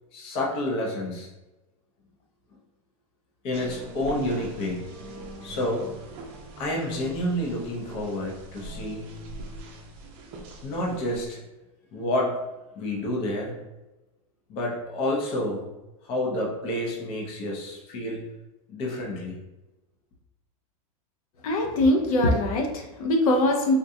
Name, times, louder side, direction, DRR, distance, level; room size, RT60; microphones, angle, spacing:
voice 1, 0.1-1.3 3.4-4.9 5.4-5.9 6.6-9.0 10.6-11.4 11.9-12.4 12.8-13.6 14.5-15.6 16.0-18.2 18.7-19.4, left 1 dB, 30° left, -1 dB, 0.6 m, -29 dB
sound 1, 3.5-11.3, right 2 dB, 30° right, 0.5 m, -41 dB
voice 2, 21.4-23.7, left 1 dB, 75° left, 2 dB, 0.6 m, -22 dB
3.7 x 2.2 x 2.6 m, 1.0 s
supercardioid pair, 160°, 18 cm